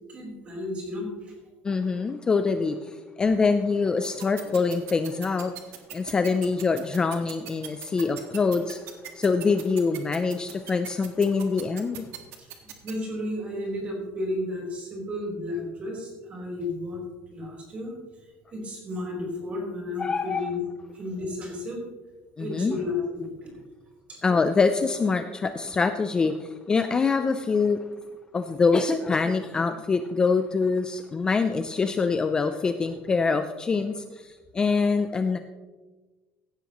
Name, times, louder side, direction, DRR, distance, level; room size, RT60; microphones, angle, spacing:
voice 1, 0.1-1.3 12.4-17.0 17.3-17.9 18.5-20.6 20.9-21.8 22.4-23.5 24.1-24.2, left 2 dB, 25° right, -1 dB, 3.6 m, -33 dB
voice 2, 1.6-5.6 5.9-8.8 9.1-12.1 20.0-20.4 22.4-22.8 24.2-27.8 28.3-35.4, left 4 dB, 15° left, 9 dB, 0.4 m, -24 dB
sound 1, 4.0-12.9, right 13 dB, 60° right, 1.6 m, -39 dB
16.0 x 11.0 x 3.0 m, 1.3 s
cardioid pair, 170°, 5 cm